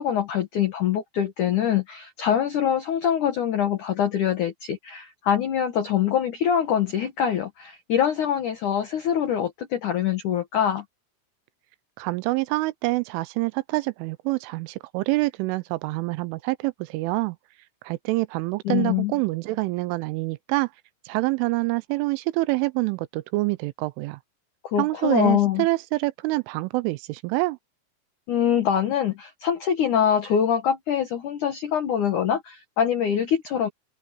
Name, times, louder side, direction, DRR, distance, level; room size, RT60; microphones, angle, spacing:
voice 1, 0.0-10.8 18.7-19.1 24.6-25.7 28.3-33.7, left 9 dB, 85° left, 1.8 m, -24 dB
voice 2, 12.0-17.4 17.8-20.7 21.1-24.2 24.8-27.6, right 21 dB, 85° right, 3.0 m, -26 dB
omnidirectional pair, 5.8 m